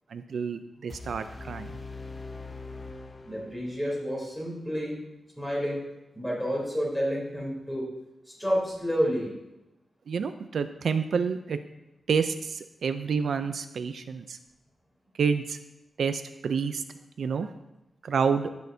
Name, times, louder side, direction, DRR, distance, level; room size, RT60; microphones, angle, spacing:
voice 1, 0.1-1.8 10.1-11.6 12.1-14.4 15.2-15.6 16.0-16.8 17.2-17.5 18.0-18.5, right 6 dB, 75° right, 9 dB, 0.4 m, -28 dB
sound 1, 0.9-3.9, left 3 dB, 30° left, 0.6 m, -42 dB
voice 2, 3.2-5.0 5.4-5.8 6.1-7.8 8.2-9.3, equal, 5° left, -5 dB, 3.4 m, -29 dB
17.0 x 6.4 x 2.7 m, 0.95 s
wide cardioid pair, 130°, 0 cm